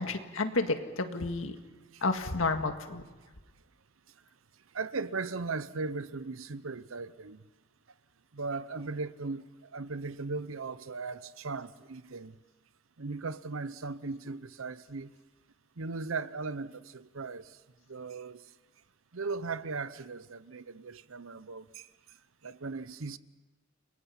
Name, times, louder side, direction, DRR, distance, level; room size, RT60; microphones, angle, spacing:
voice 1, 0.0-1.6 2.0-3.0, left 3 dB, 75° left, 1.9 m, -31 dB
voice 2, 4.7-7.4 8.3-9.4 9.7-12.3 13.0-15.1 15.8-17.6 17.9-18.4 19.1-21.9 22.4-23.2, right 4 dB, 75° right, 0.8 m, -37 dB
29.5 x 22.5 x 5.8 m
head